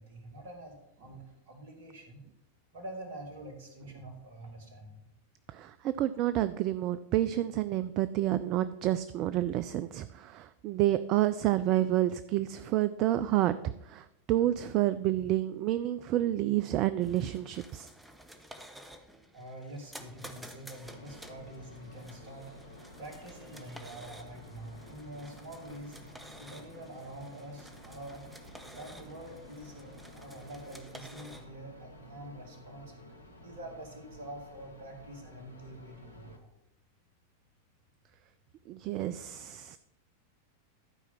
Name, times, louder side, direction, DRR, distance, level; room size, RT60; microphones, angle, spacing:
voice 1, 0.0-2.2 2.7-5.1 19.3-22.6 23.0-26.0 26.4-28.2 28.7-32.9 33.4-36.5, right 1 dB, 55° right, 4 dB, 2.1 m, -46 dB
voice 2, 5.5-13.5 13.9-17.9 38.7-39.8, right 14 dB, 40° right, 13 dB, 0.3 m, -29 dB
sound 1, 17.0-31.5, equal, 5° right, 1.0 m, -51 dB
sound 2, 20.8-36.4, left 1 dB, 80° left, 1.1 m, -52 dB
12.0 x 4.9 x 5.6 m, 0.85 s
figure-of-eight pair, 90°, 0 cm